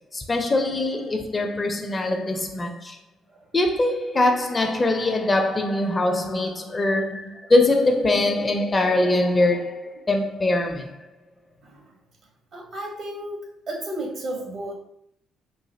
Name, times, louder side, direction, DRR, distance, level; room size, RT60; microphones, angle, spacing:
voice 1, 0.1-3.0 3.5-11.0, left 2 dB, 30° left, 0.6 m, -22 dB
voice 2, 12.5-14.7, right 1 dB, 55° right, 1.3 m, -33 dB
3.9 x 2.8 x 2.8 m
hypercardioid pair, 50°, 0 cm